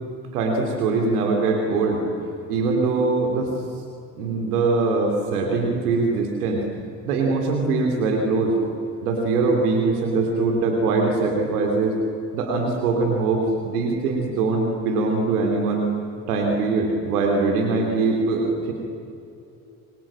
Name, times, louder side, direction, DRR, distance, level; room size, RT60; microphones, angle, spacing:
voice 1, 0.3-2.0 2.5-3.6 4.2-6.6 7.1-8.5 9.0-11.9 12.3-15.9 16.3-18.7, right 3 dB, 90° right, 2 dB, 3.1 m, -22 dB
27.0 x 24.0 x 7.5 m, 2.6 s
hypercardioid pair, 50°, 44 cm